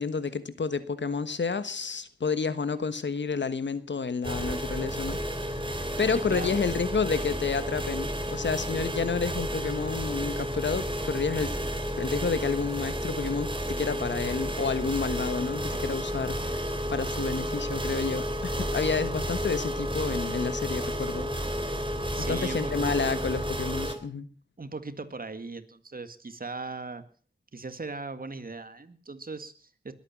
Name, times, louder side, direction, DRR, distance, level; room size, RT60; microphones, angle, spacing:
voice 1, 0.0-11.6 12.0-21.6 22.3-24.3, left 5 dB, 85° left, 13 dB, 1.3 m, -30 dB
sound 1, 4.2-23.9, equal, 30° right, 3.2 m, -31 dB
voice 2, 6.1-6.6 22.1-22.7 24.6-27.0 27.5-29.9, right 3 dB, 50° right, 11 dB, 1.9 m, -38 dB
21.0 x 8.9 x 7.4 m, 0.44 s
wide cardioid pair, 55°, 18 cm